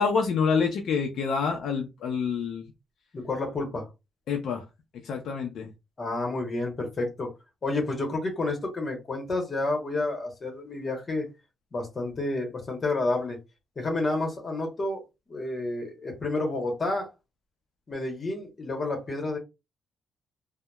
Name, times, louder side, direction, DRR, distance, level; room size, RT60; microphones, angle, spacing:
voice 1, 0.0-2.6 4.3-4.6 5.0-5.7, left 5 dB, 65° left, 0.5 m, -27 dB
voice 2, 3.1-3.9 6.0-7.3 7.6-11.3 11.7-13.4 13.8-15.0 15.3-17.1 17.9-19.4, left 2 dB, 30° left, 1.0 m, -30 dB
2.8 x 2.1 x 2.2 m
cardioid pair, 135°, 0 cm